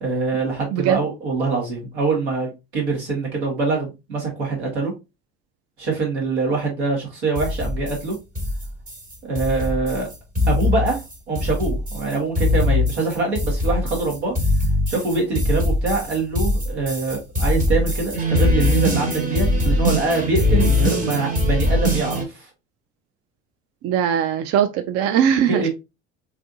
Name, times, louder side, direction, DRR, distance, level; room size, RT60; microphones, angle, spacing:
voice 1, 0.0-4.9 5.8-8.1 9.2-10.1 10.4-11.0 11.3-14.3 14.9-22.4 25.5-25.7, right 3 dB, 85° right, 1.6 m, -24 dB
voice 2, 0.7-1.0 23.8-25.7, right 9 dB, 45° right, 0.4 m, -20 dB
sound 1, 7.4-22.2, left 1 dB, 25° right, 1.2 m, -22 dB
3.5 x 3.3 x 2.6 m
hypercardioid pair, 60°, 33 cm